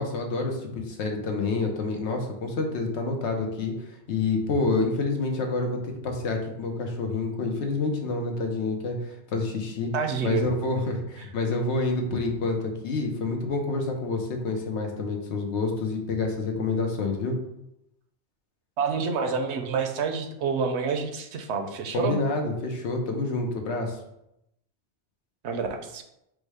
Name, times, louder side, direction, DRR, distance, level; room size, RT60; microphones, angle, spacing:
voice 1, 0.0-9.9 10.2-17.4 21.9-24.0, left 3 dB, 90° left, 3 dB, 1.1 m, -28 dB
voice 2, 9.9-10.4 18.8-22.2 25.4-26.0, right 5 dB, 85° right, 6 dB, 0.9 m, -28 dB
4.9 x 2.1 x 4.7 m, 0.82 s
omnidirectional pair, 1.1 m